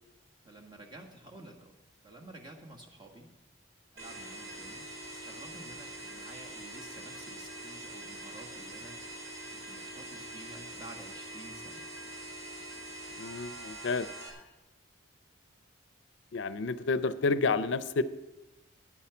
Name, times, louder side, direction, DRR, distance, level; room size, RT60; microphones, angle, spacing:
voice 1, 0.4-1.7 2.0-3.3 3.9-11.8, right 1 dB, 25° right, 0 dB, 1.7 m, -51 dB
sound 1, 4.0-14.3, right 1 dB, 70° right, 3.5 m, -44 dB
voice 2, 13.2-14.1 16.3-18.0, left 4 dB, 65° left, 14 dB, 0.5 m, -30 dB
10.5 x 8.7 x 7.0 m, 1.1 s
head